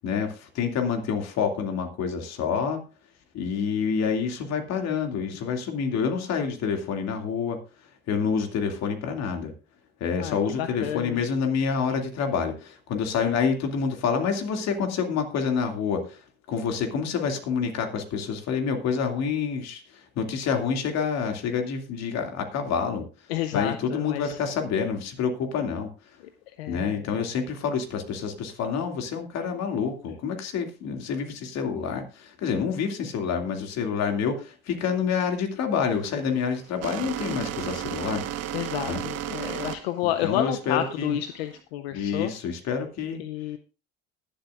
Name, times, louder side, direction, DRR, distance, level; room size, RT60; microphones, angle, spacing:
voice 1, 0.0-2.8 3.3-7.6 8.1-9.5 10.0-16.2 16.5-23.1 23.5-25.9 26.7-38.2 38.9-39.0 40.2-41.2 41.9-43.2, left 6 dB, 60° left, 4 dB, 2.4 m, -27 dB
voice 2, 10.2-11.2 23.3-24.4 26.5-27.2 38.5-42.3 43.2-43.6, left 12 dB, 90° left, 9 dB, 0.6 m, -30 dB
sound 1, 35.7-41.6, right 11 dB, 55° right, 1.3 m, -34 dB
20.0 x 7.8 x 2.5 m, 0.33 s
supercardioid pair, 75°, 30 cm